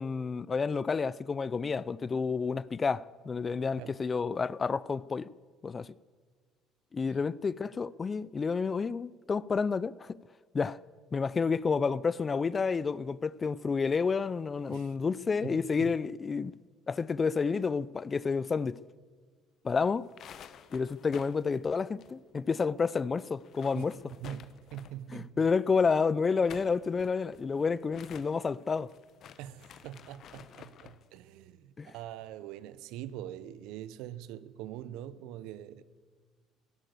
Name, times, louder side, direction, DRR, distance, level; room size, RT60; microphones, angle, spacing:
voice 1, 0.0-5.3 5.6-5.9 6.9-10.2 10.5-10.8 11.1-16.5 16.9-18.8 19.6-20.1 20.7-24.1 25.1-28.9 31.8-31.9, left 5 dB, 30° left, 0.5 m, -30 dB
voice 2, 15.4-15.9 23.7-23.8 24.2-25.5 29.4-35.8, right 11 dB, 75° right, 0.8 m, -43 dB
sound 1, 20.0-22.6 22.8-22.9 23.3-25.1 26.2-31.0, left 9 dB, 55° left, 0.9 m, -52 dB
16.0 x 11.5 x 7.7 m
supercardioid pair, 80°, 0 cm